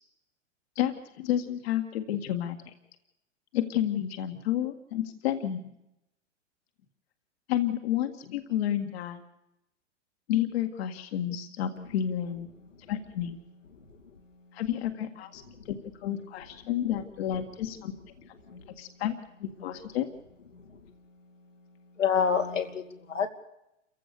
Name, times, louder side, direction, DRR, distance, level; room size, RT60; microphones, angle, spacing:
voice 1, 0.8-2.7 3.5-5.7 7.5-9.2 10.3-12.5 12.9-13.4 14.5-15.4 16.0-17.9 18.8-19.2 19.4-20.1, left 11 dB, 55° left, 7 dB, 1.9 m, -30 dB
voice 2, 22.0-23.3, left 7 dB, 85° left, 3 dB, 2.6 m, -27 dB
28.5 x 15.5 x 6.8 m, 0.87 s
figure-of-eight pair, 105°, 37 cm